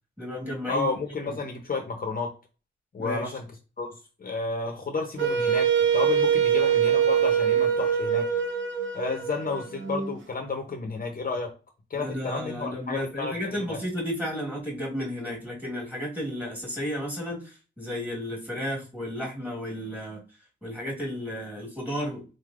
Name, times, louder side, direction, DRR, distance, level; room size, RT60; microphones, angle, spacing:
voice 1, 0.2-0.9 1.3-1.4 3.0-3.3 11.9-20.2 20.6-22.2, equal, 10° right, -3 dB, 1.5 m, -33 dB
voice 2, 0.7-2.3 2.9-3.5 3.8-3.9 4.2-5.7 5.9-8.3 8.9-11.5 11.9-13.8, left 3 dB, 45° left, 4 dB, 0.7 m, -31 dB
Wind instrument woodwind instrument, 5.2-10.1, right 8 dB, 70° right, 0.7 m, -24 dB
3.9 x 3.2 x 2.5 m, 0.33 s
wide cardioid pair, 150°, 20 cm